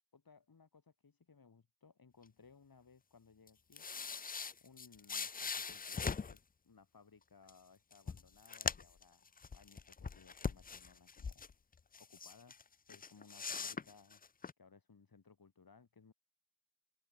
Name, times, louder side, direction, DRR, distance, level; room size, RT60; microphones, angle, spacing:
voice 1, 0.1-3.8 4.6-11.3 12.0-14.2 14.6-16.1, left 5 dB, 60° left, 2.9 m, -63 dB
sound 1, 3.5-6.4 7.5-7.6 7.9-9.0 9.4-11.5 11.9-12.6 12.9-14.5, left 5 dB, 25° left, 0.3 m, -41 dB
open air
wide cardioid pair, 80°, 39 cm